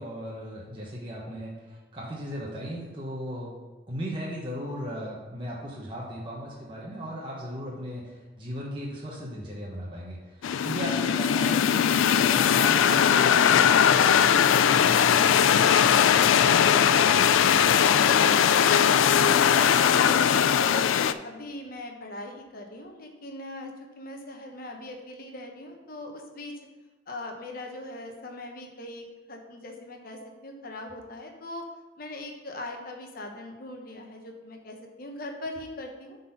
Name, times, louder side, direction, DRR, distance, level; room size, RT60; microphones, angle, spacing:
voice 1, 0.0-3.5 3.9-16.5, equal, 25° right, -5 dB, 1.2 m, -37 dB
sound 1, 10.4-21.1, left 8 dB, 90° left, 0.3 m, -20 dB
voice 2, 17.6-20.8 21.2-26.6 27.1-31.6 32.0-36.2, left 1 dB, 50° left, 2 dB, 1.0 m, -40 dB
8.2 x 4.1 x 5.6 m, 1.2 s
head